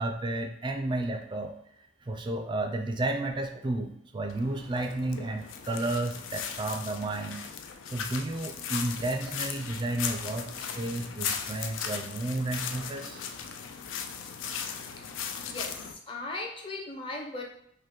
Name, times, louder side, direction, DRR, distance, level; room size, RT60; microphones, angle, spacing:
voice 1, 0.0-1.5 2.1-7.4 7.9-13.2, right 2 dB, 25° right, 5 dB, 0.4 m, -32 dB
sound 1, 4.3-15.9, left 7 dB, 80° left, 0.4 m, -37 dB
voice 2, 15.4-17.4, left 2 dB, 25° left, 0 dB, 0.7 m, -38 dB
5.2 x 2.2 x 3.7 m, 0.74 s
head